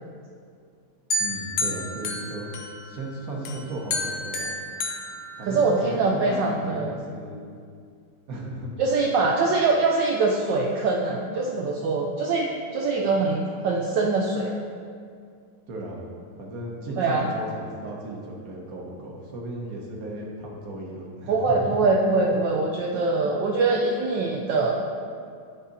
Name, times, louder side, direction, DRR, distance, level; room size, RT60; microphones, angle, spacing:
sound 1, 1.1-3.0 3.5-6.0, left 2 dB, 70° left, 0.9 m, -31 dB
voice 1, 1.2-2.5 2.9-4.5 5.3-7.4 8.3-8.7 15.7-16.1 16.4-21.8 22.3-22.4, right 1 dB, 50° right, -1 dB, 1.2 m, -35 dB
voice 2, 5.4-6.9 8.8-14.6 17.0-17.3 21.3-24.9, right 3 dB, 75° right, 0 dB, 1.1 m, -23 dB
9.7 x 4.0 x 4.1 m, 2.2 s
omnidirectional pair, 2.4 m